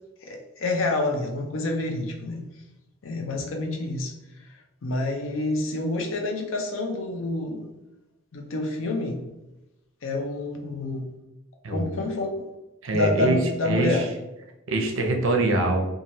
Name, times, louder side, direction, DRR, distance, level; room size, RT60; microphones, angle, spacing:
voice 1, 0.2-2.4 3.0-7.7 8.3-9.2 10.0-11.0 11.7-12.4 12.9-14.1, left 2 dB, 70° left, 3 dB, 0.5 m, -28 dB
voice 2, 12.8-13.4 13.7-14.0 14.7-15.9, right 2 dB, 65° right, 2 dB, 0.6 m, -23 dB
3.1 x 2.4 x 2.7 m, 1.0 s
head